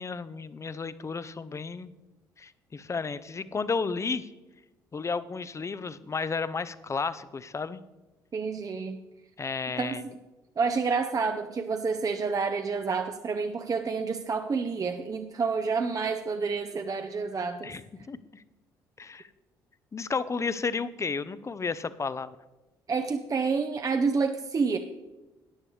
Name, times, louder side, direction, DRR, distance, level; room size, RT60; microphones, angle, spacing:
voice 1, 0.0-1.9 2.4-4.3 4.9-7.8 9.4-10.0 17.6-18.4 19.0-19.3 19.9-22.4, left 4 dB, 30° left, 15 dB, 0.6 m, -32 dB
voice 2, 8.3-9.0 9.8-10.0 10.6-17.7 22.9-24.8, right 5 dB, 35° right, 6 dB, 0.7 m, -29 dB
13.5 x 9.8 x 3.2 m, 1.1 s
hypercardioid pair, 50°, 10 cm